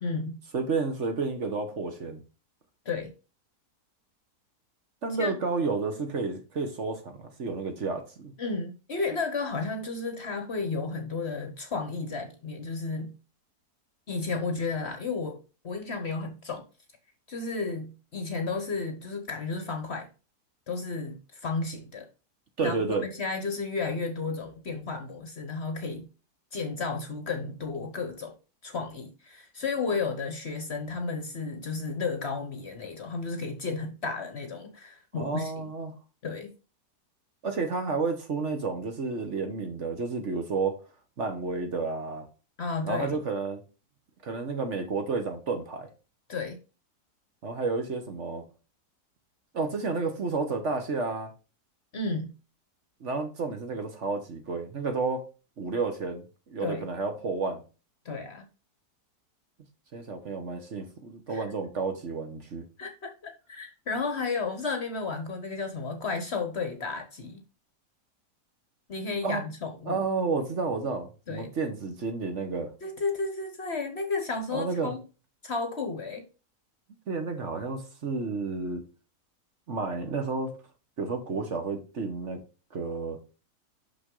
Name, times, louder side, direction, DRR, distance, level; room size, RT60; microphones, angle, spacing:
voice 1, 0.0-0.4 2.8-3.1 5.2-5.4 8.4-13.1 14.1-15.4 15.6-16.6 17.3-20.1 20.7-22.1 22.6-26.1 26.5-28.3 28.6-35.5 36.2-36.5 42.6-43.2 46.3-46.6 51.9-52.3 56.6-56.8 58.0-58.5 61.3-61.4 62.8-67.4 68.9-70.0 71.3-71.5 72.8-75.0 75.4-76.3, left 4 dB, 45° left, 1.1 m, -33 dB
voice 2, 0.5-2.2 5.0-8.3 22.6-23.1 35.1-35.9 37.4-40.8 41.2-42.3 42.8-43.6 44.2-45.9 47.4-48.4 49.5-51.3 53.0-55.2 55.6-57.6 59.9-62.6 69.2-69.4 69.9-72.7 74.5-75.0 77.1-78.8 79.7-80.5 81.0-82.4 82.7-83.2, right 4 dB, 50° right, 1.3 m, -31 dB
6.2 x 5.7 x 3.7 m
omnidirectional pair, 1.8 m